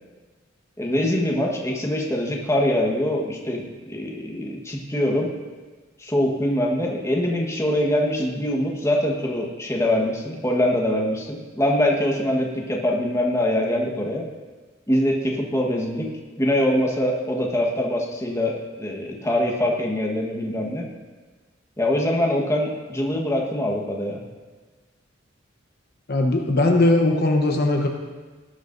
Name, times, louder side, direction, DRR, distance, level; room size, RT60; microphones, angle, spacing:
voice 1, 0.8-5.3 6.0-14.2 14.9-16.1 16.4-20.8 21.8-24.2, left 1 dB, 15° left, -1 dB, 1.4 m, -23 dB
voice 2, 26.1-27.9, left 2 dB, 55° left, 2 dB, 1.0 m, -19 dB
18.0 x 11.0 x 2.7 m, 1.4 s
head